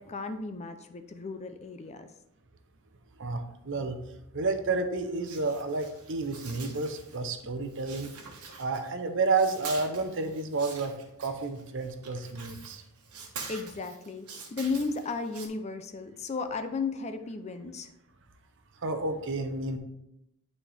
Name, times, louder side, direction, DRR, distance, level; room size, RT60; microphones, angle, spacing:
voice 1, 0.0-2.1 13.5-17.9, left 4 dB, 30° left, 8 dB, 0.5 m, -34 dB
voice 2, 3.2-4.0 4.3-8.1 8.6-12.8 18.8-19.8, right 3 dB, 55° right, 7 dB, 0.7 m, -30 dB
sound 1, 5.2-7.4 7.7-9.0 9.3-15.5, right 5 dB, 85° right, 1.2 m, -45 dB
8.8 x 4.2 x 3.4 m, 0.83 s
head